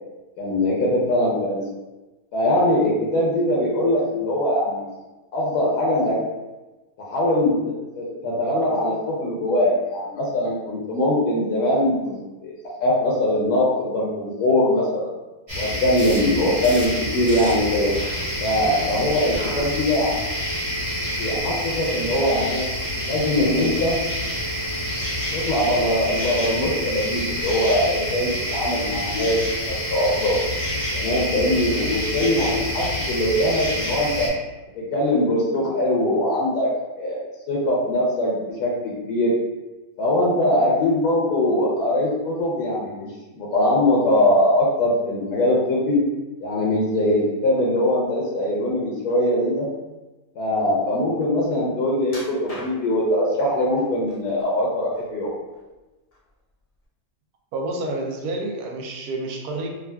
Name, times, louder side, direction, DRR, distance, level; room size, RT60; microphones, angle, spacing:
voice 1, 0.4-1.6 2.3-4.9 5.3-6.2 7.0-12.5 12.8-15.1 15.6-17.9 18.4-20.2 21.1-22.6 23.0-24.0 25.3-29.4 29.7-30.4 30.9-34.3 34.8-36.7 37.0-37.2 37.5-39.4 40.0-43.1 43.3-46.0 46.4-49.7 50.4-55.3, left 1 dB, 85° left, -4 dB, 1.1 m, -22 dB
sound 1, 15.5-34.3, equal, 35° right, 1.4 m, -27 dB
sound 2, 16.0-16.2 16.6-16.9 17.3-17.5 17.9-18.2 18.6-18.9 19.3-19.6 20.1-20.5, equal, 15° right, 0.5 m, -37 dB
sound 3, 52.1-53.1 53.8-54.4 54.8-55.8 56.1-56.3 56.8-56.9, equal, 65° left, 0.3 m, -39 dB
voice 2, 57.5-59.8, right 2 dB, 75° right, 1 dB, 1.1 m, -29 dB
3.5 x 2.4 x 2.2 m, 1.1 s
omnidirectional pair, 1.6 m